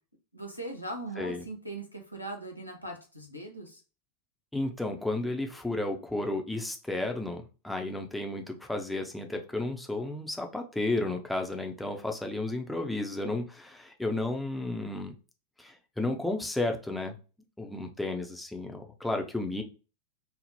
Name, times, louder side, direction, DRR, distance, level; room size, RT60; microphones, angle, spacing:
voice 1, 0.3-3.8, right 2 dB, 85° left, 1 dB, 0.7 m, -40 dB
voice 2, 4.5-15.2 15.6-17.2 17.6-19.6, left 2 dB, 5° left, 3 dB, 0.5 m, -33 dB
3.1 x 2.0 x 2.7 m, 0.33 s
figure-of-eight pair, 90°, 0 cm